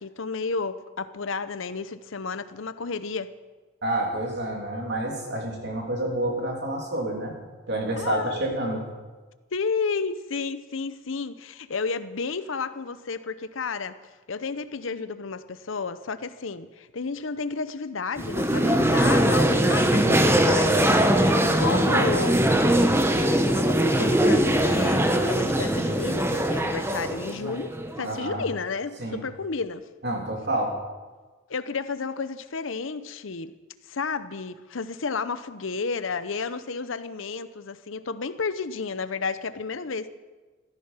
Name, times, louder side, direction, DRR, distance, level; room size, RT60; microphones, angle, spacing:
voice 1, 0.0-3.3 8.0-8.4 9.5-14.0 14.3-22.5 22.9-23.0 23.4-29.8 31.5-33.5 33.9-40.1, left 4 dB, 70° left, 13 dB, 0.7 m, -32 dB
voice 2, 3.8-7.3 7.7-8.9 28.0-28.4 29.0-29.2 30.0-30.8, right 1 dB, 55° right, 0 dB, 3.1 m, -28 dB
sound 1, 18.2-28.2, right 1 dB, 10° right, 0.9 m, -21 dB
15.0 x 13.0 x 5.7 m, 1.3 s
head